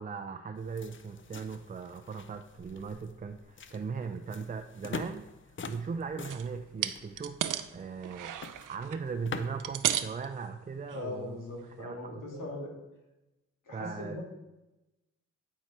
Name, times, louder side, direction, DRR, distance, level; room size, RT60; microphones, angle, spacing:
voice 1, 0.0-5.3 5.6-11.4 11.8-12.5 13.7-14.2, right 5 dB, 25° right, 6 dB, 0.4 m, -39 dB
sound 1, 0.6-9.8, left 4 dB, 40° left, 0.6 m, -45 dB
sound 2, 6.3-6.5 6.8-7.7 8.0-9.0 9.5-10.3 10.9-11.0 11.5-11.6, right 11 dB, 80° right, 0.5 m, -33 dB
voice 2, 10.9-12.7 13.7-14.2, left 2 dB, 85° left, -2 dB, 2.1 m, -40 dB
9.0 x 4.7 x 4.2 m, 0.99 s
cardioid pair, 75°, 31 cm